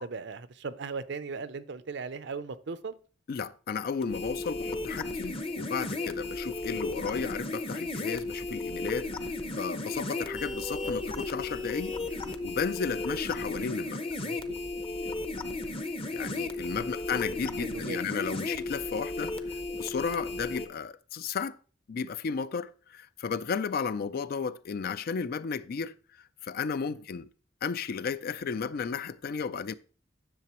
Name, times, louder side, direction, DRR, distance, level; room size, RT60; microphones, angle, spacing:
voice 1, 0.0-2.9 14.2-14.6 16.7-16.9 17.6-18.0 26.9-27.0, right 4 dB, 65° right, 0.6 m, -38 dB
voice 2, 3.3-9.1 9.6-14.0 16.1-19.3 19.7-21.6 21.9-26.0 26.4-27.3 27.6-29.7, left 5 dB, 55° left, 0.4 m, -33 dB
sound 1, 4.0-20.7, left 2 dB, 30° left, 0.8 m, -35 dB
10.5 x 6.7 x 3.0 m
head